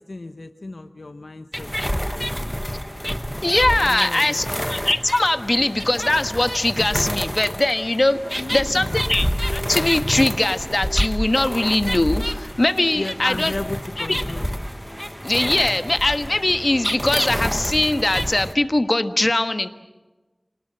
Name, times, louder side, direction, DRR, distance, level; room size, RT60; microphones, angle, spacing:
voice 1, 0.0-2.3 3.8-4.5 8.4-9.0 12.9-14.5, left 2 dB, 80° left, 8 dB, 0.9 m, -34 dB
sound 1, 1.5-18.5, equal, 5° left, 1.1 m, -28 dB
voice 2, 3.4-13.5 14.1-14.2 15.2-19.7, left 2 dB, 50° left, 9 dB, 1.3 m, -21 dB
27.5 x 19.0 x 7.8 m, 1.1 s
wide cardioid pair, 45°, 0 cm